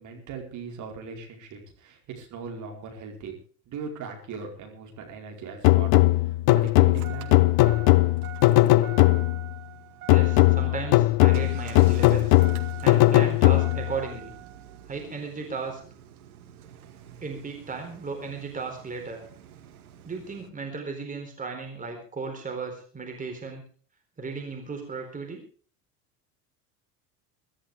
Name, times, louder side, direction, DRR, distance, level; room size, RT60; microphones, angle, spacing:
voice 1, 0.0-3.4 3.7-6.0 6.5-7.4, right 5 dB, 40° right, 1 dB, 4.7 m, -39 dB
Engine starting, 5.4-20.5, right 13 dB, 65° right, 2.0 m, -45 dB
sound 1, 5.6-9.5 10.1-14.0, left 18 dB, 40° left, 0.6 m, -19 dB
voice 2, 10.1-12.4 12.8-14.3 14.9-15.8 17.2-19.2 20.0-23.6 24.2-25.4, right 4 dB, 15° right, 3 dB, 4.1 m, -35 dB
23.0 x 12.5 x 3.5 m, 0.43 s
figure-of-eight pair, 75°, 47 cm